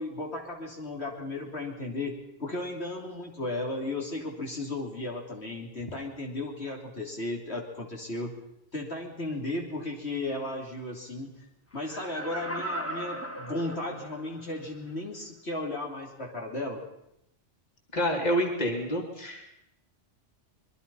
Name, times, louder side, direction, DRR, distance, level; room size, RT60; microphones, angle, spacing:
voice 1, 0.0-8.3 8.7-11.3 11.7-16.8, left 2 dB, 60° left, 0 dB, 3.6 m, -35 dB
Laughter, 11.7-14.4 14.9-15.0, right 1 dB, 10° left, 2.0 m, -37 dB
voice 2, 17.9-19.4, equal, 35° left, 1 dB, 3.5 m, -28 dB
25.5 x 22.5 x 5.6 m, 0.80 s
omnidirectional pair, 1.2 m